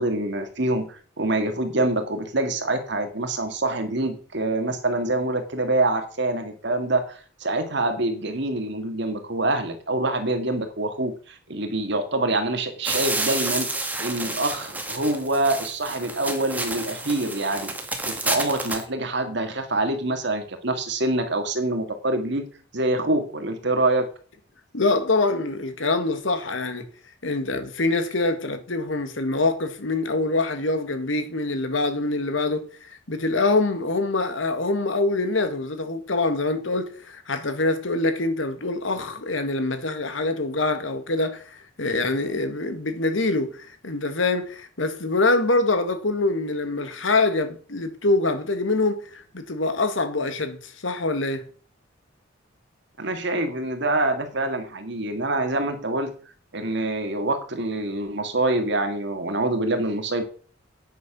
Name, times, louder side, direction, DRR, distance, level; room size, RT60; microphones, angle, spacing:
voice 1, 0.0-13.7 14.0-17.7 18.0-24.1 53.0-56.1 56.5-60.2, right 2 dB, 60° right, 2.0 m, -25 dB
sound 1, 12.8-18.8, right 2 dB, 10° right, 1.6 m, -30 dB
voice 2, 24.7-26.9 27.2-51.4, left 2 dB, 75° left, 1.8 m, -25 dB
9.6 x 6.9 x 6.1 m
head